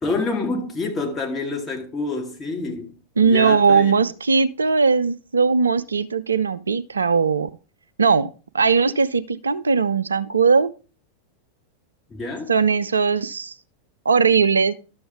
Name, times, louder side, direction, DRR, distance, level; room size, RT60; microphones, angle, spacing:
voice 1, 0.0-2.9 3.2-3.9 12.1-12.5, left 3 dB, 15° left, 2.1 m, -27 dB
voice 2, 3.2-7.5 8.0-10.7 12.5-13.5 14.1-14.7, right 5 dB, 75° right, 0.4 m, -19 dB
12.0 x 6.9 x 3.5 m
figure-of-eight pair, 90°, 0 cm